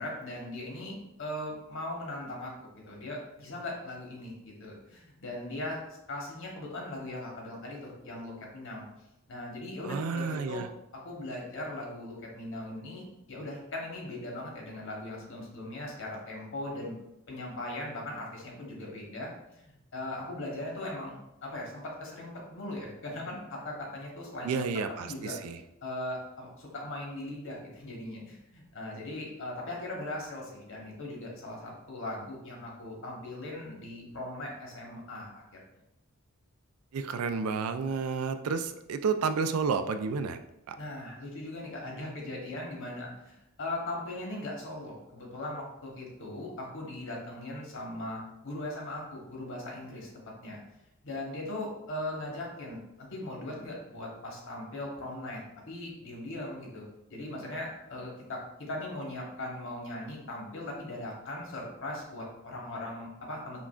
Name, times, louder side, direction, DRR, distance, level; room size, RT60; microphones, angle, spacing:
voice 1, 0.0-5.8 6.1-8.9 9.3-10.6 10.9-16.9 17.3-24.5 25.0-25.4 25.8-35.6 40.8-50.1 50.4-50.6 51.0-63.7, left 1 dB, 60° left, -2 dB, 1.2 m, -39 dB
voice 2, 9.8-10.7 24.4-25.6 36.9-40.4 40.7-40.8, right 5 dB, 80° right, 9 dB, 0.3 m, -31 dB
5.7 x 2.4 x 2.4 m, 0.86 s
head